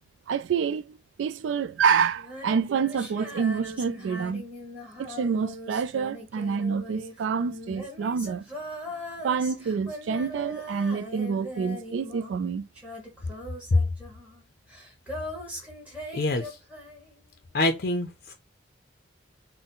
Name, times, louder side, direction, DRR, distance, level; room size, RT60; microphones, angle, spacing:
voice 1, 0.3-4.4 5.0-8.5 9.2-12.7, right 6 dB, 85° right, 0.3 m, -27 dB
Female singing, 2.1-12.5 12.7-17.2, equal, 5° right, 1.1 m, -40 dB
voice 2, 16.1-16.6 17.5-18.3, left 2 dB, 50° left, 0.5 m, -26 dB
4.0 x 2.1 x 3.7 m
head